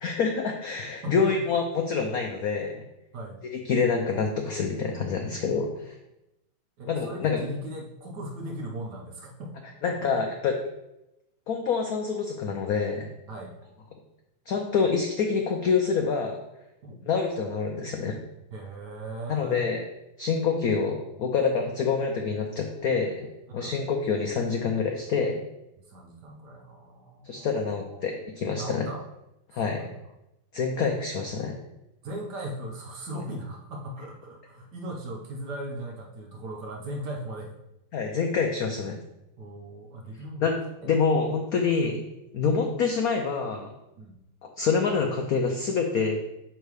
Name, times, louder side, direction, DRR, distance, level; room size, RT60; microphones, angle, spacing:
voice 1, 0.0-2.8 3.7-6.0 6.9-7.4 9.8-10.5 11.5-13.1 14.5-16.4 17.0-18.2 19.3-19.8 20.2-23.3 23.5-25.3 27.2-28.9 29.5-29.9 30.5-31.6 37.9-39.0 40.4-40.5 40.8-42.0 42.3-43.7 44.4-46.3, left 5 dB, 90° left, 2 dB, 0.8 m, -26 dB
voice 2, 6.8-9.5 9.9-10.2 13.3-13.6 16.8-17.0 18.5-19.7 23.5-23.8 25.9-28.1 28.6-29.0 29.5-30.0 32.0-37.5 39.4-40.5 44.0-44.1, right 1 dB, 60° right, 1 dB, 1.2 m, -38 dB
6.8 x 3.7 x 4.7 m, 0.89 s
omnidirectional pair, 2.4 m